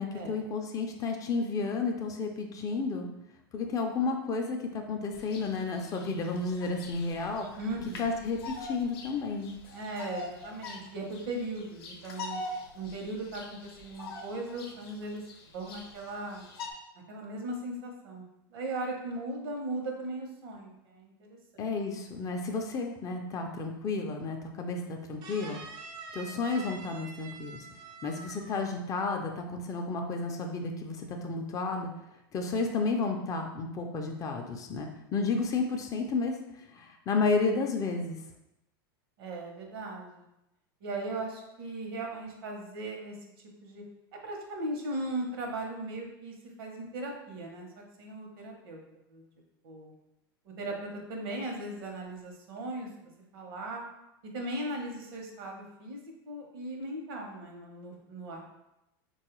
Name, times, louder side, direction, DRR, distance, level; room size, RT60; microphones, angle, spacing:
voice 1, 0.0-3.1 3.5-7.5 8.0-9.5 21.6-25.6 26.1-27.6 28.0-31.9 32.3-36.4 36.7-38.2, left 4 dB, 25° left, 3 dB, 0.4 m, -32 dB
Bird vocalization bird call bird song, 5.1-16.7, left 3 dB, 75° left, 0.6 m, -44 dB
voice 2, 7.6-8.1 9.7-12.4 12.7-15.2 15.5-16.4 17.1-21.7 39.2-40.2 40.8-43.2 43.6-43.8 44.1-48.8 49.1-49.2 49.6-49.9 50.4-53.8 54.3-58.4, right 2 dB, 75° right, 1 dB, 0.8 m, -38 dB
sound 1, 25.2-28.8 29.1-29.5, right 4 dB, 35° right, 0.4 m, -46 dB
3.3 x 2.3 x 3.0 m, 0.89 s
supercardioid pair, 125°, 13 cm